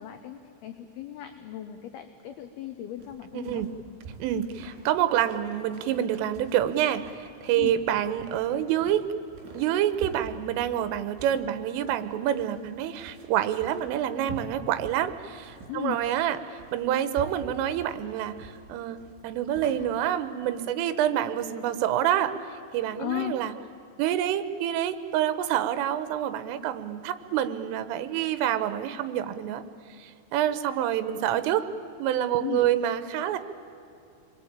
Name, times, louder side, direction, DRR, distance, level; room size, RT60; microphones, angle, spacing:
voice 1, 0.0-3.6 7.6-7.7 15.7-16.0 23.0-23.3 32.4-32.6, left 13 dB, 75° left, 7 dB, 2.4 m, -36 dB
sound 1, 3.0-19.7, right 4 dB, 60° right, 5.7 m, -46 dB
voice 2, 3.3-3.7 4.2-9.1 9.6-19.0 19.2-22.3 22.7-23.5 24.0-29.6 30.0-31.7 32.0-33.4, right 11 dB, 85° right, 11 dB, 3.6 m, -27 dB
29.0 x 21.5 x 8.8 m, 2.7 s
omnidirectional pair, 5.7 m